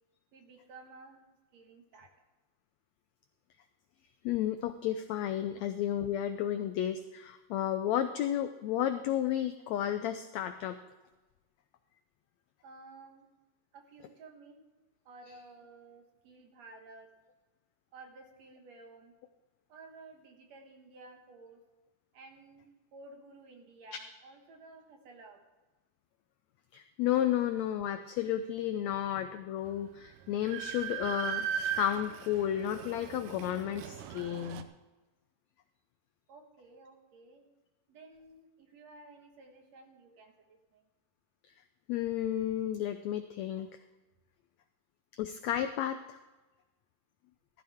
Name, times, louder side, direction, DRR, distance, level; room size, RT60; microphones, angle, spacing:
voice 1, 0.3-1.3 1.5-2.1 12.6-13.3 13.7-14.6 15.1-17.1 17.9-19.1 19.7-21.6 22.1-25.4 36.3-37.5 37.9-40.9, right 3 dB, 60° right, 4 dB, 2.4 m, -54 dB
voice 2, 4.2-10.8 26.7-34.7 41.9-43.8 45.2-46.2, left 11 dB, 80° left, 9 dB, 1.6 m, -32 dB
Train, 29.7-29.8 30.1-34.6, right 8 dB, 75° right, 2.2 m, -38 dB
14.5 x 14.0 x 3.5 m, 1.2 s
omnidirectional pair, 3.8 m